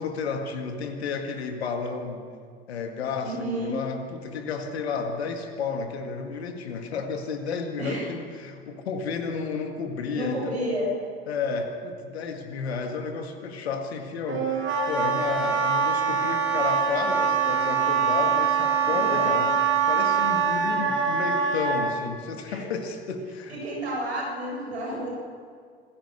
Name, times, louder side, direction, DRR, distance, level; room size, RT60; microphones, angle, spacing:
voice 1, 0.0-2.2 2.7-10.6 11.3-19.5 19.9-23.6, left 5 dB, 80° left, 5 dB, 2.0 m, -32 dB
voice 2, 3.2-3.8 7.8-8.1 10.1-11.0 18.8-19.3 22.5-22.8 23.5-25.1, equal, 85° right, -3 dB, 7.4 m, -31 dB
Wind instrument woodwind instrument, 14.3-21.8, right 6 dB, 40° right, 5.2 m, -24 dB
26.0 x 16.0 x 6.7 m, 2.1 s
figure-of-eight pair, 65°, 32 cm